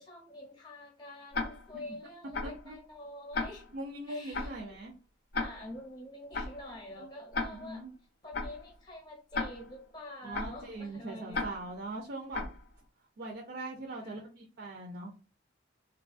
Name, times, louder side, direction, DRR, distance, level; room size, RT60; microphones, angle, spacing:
voice 1, 0.0-3.6 4.1-4.5 5.3-7.8 8.2-11.4 14.0-14.4, left 1 dB, 20° left, 0.7 m, -46 dB
Tick-tock, 1.3-1.8 2.3-2.7 3.3-3.8 4.3-4.7 5.3-5.8 6.3-6.7 7.3-7.8 8.3-8.7 9.3-9.8 10.3-10.7 11.3-11.8 12.3-12.7, left 3 dB, 55° left, 0.5 m, -36 dB
voice 2, 2.4-2.8 3.7-4.9 6.6-7.1 7.5-7.9 10.2-12.5 13.2-15.1, right 2 dB, 55° right, 0.5 m, -41 dB
3.1 x 2.3 x 2.4 m
head